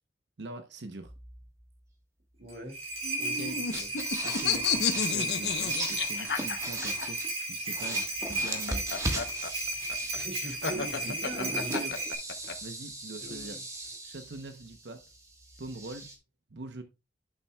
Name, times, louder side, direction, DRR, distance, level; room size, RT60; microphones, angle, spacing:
voice 1, 0.4-1.1 3.4-3.6 4.2-7.2 7.5-8.9 10.7-12.0 12.6-13.6 14.0-15.1 15.6-16.1 16.5-16.8, right 2 dB, 75° right, 0.8 m, -43 dB
sound 1, 1.0-1.6 3.4-3.5 3.7-7.3 7.6-10.5 11.3-16.2, right 1 dB, 15° right, 1.3 m, -39 dB
voice 2, 2.4-2.8 3.2-3.9 10.1-11.7 13.2-13.6, right 1 dB, 60° right, 2.5 m, -41 dB
sound 2, 2.5-12.1, right 2 dB, 35° right, 2.6 m, -34 dB
sound 3, 3.0-7.1 8.3-12.5, left 6 dB, 70° left, 0.8 m, -31 dB
9.0 x 7.1 x 2.3 m
head